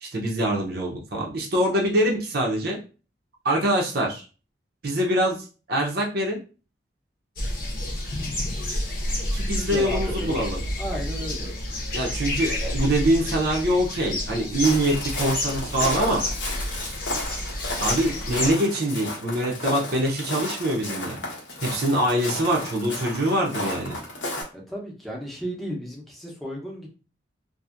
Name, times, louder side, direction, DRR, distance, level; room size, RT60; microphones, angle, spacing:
voice 1, 0.0-2.8 3.4-4.3 4.8-6.4 9.3-10.6 11.9-16.2 17.8-21.2 21.6-24.0, right 1 dB, 55° right, -1 dB, 0.6 m, -24 dB
sound 1, 7.4-18.5, left 1 dB, 50° left, 0.8 m, -29 dB
voice 2, 9.5-10.4 10.8-11.5 24.5-26.9, equal, ahead, -3 dB, 0.8 m, -34 dB
Walk footsteps, 14.6-24.4, left 2 dB, 80° left, 0.9 m, -33 dB
2.7 x 2.6 x 2.4 m, 0.35 s
head